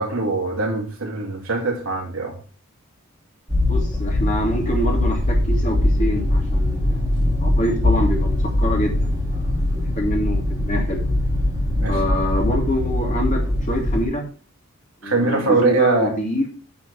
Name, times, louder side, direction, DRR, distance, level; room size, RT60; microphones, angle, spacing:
voice 1, 0.0-2.4 11.7-12.0 15.0-16.1, right 3 dB, 70° right, 2.7 m, -22 dB
sound 1, 3.5-14.0, left 1 dB, 15° right, 2.1 m, -21 dB
voice 2, 3.6-7.0 7.4-9.4 9.7-11.1 11.9-14.3 15.0-16.5, equal, 35° left, 2.2 m, -25 dB
8.7 x 3.9 x 6.7 m
head